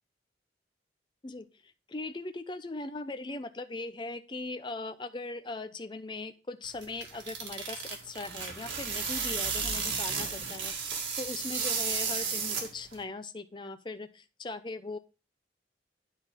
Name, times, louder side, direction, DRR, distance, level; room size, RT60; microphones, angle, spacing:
voice 1, 1.9-15.0, left 2 dB, 25° left, 9 dB, 0.5 m, -39 dB
sound 1, 6.6-13.0, right 5 dB, 90° right, 1.8 m, -33 dB
9.9 x 4.3 x 3.5 m, 0.32 s
head